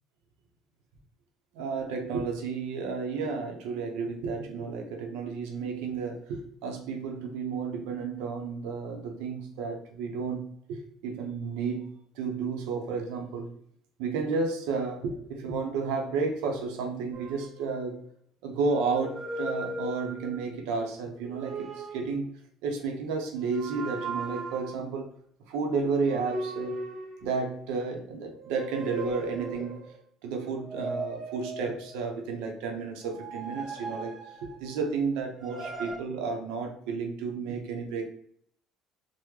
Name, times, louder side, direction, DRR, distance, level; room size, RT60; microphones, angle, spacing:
voice 1, 1.5-11.9 12.1-13.5 14.0-18.0 18.4-25.1 25.5-26.8 27.2-29.8 30.2-34.1 34.4-38.1, right 4 dB, 90° right, 3 dB, 0.7 m, -32 dB
sound 1, 17.1-18.1 18.6-20.6 21.2-22.1 23.4-24.9 26.0-27.7 28.3-30.0 30.6-32.2 33.0-34.9 35.4-36.0, right 2 dB, 30° right, 0.8 m, -38 dB
3.1 x 2.1 x 3.5 m, 0.66 s
cardioid pair, 125°, 0 cm